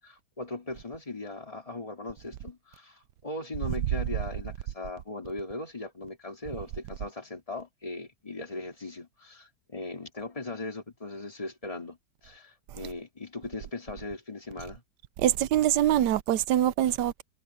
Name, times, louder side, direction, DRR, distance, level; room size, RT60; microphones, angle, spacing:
voice 1, 0.0-12.0 12.2-14.8, left 2 dB, 20° left, 2.7 m, -39 dB
voice 2, 15.2-17.2, right 12 dB, 85° right, 1.3 m, -24 dB
omnidirectional pair, 1.8 m